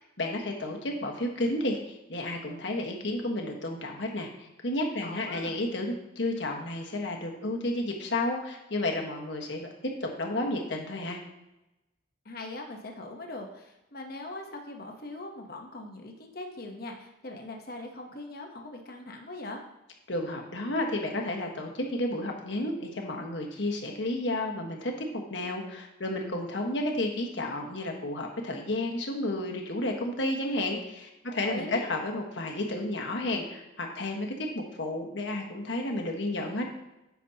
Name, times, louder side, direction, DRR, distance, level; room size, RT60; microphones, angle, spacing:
voice 1, 0.2-11.2 20.1-36.7, left 1 dB, 65° left, 1 dB, 1.4 m, -32 dB
voice 2, 5.0-5.6 12.2-19.6 31.4-31.9, left 2 dB, 50° left, 1 dB, 1.0 m, -41 dB
10.5 x 7.1 x 2.9 m, 0.94 s
head